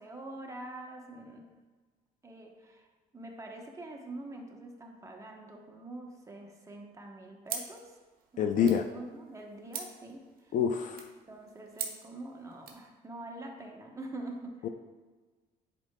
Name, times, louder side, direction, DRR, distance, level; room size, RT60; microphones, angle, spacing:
voice 1, 0.0-1.4 2.2-2.9 3.1-8.0 8.3-10.6 11.3-14.7, right 2 dB, 20° right, 1 dB, 0.9 m, -45 dB
sound 1, 7.5-12.9, right 6 dB, 60° right, 1.0 m, -44 dB
voice 2, 8.4-8.8 10.5-11.0 14.6-14.7, left 7 dB, 50° left, 8 dB, 0.4 m, -26 dB
9.6 x 4.5 x 2.2 m, 1.3 s
cardioid pair, 110°, 17 cm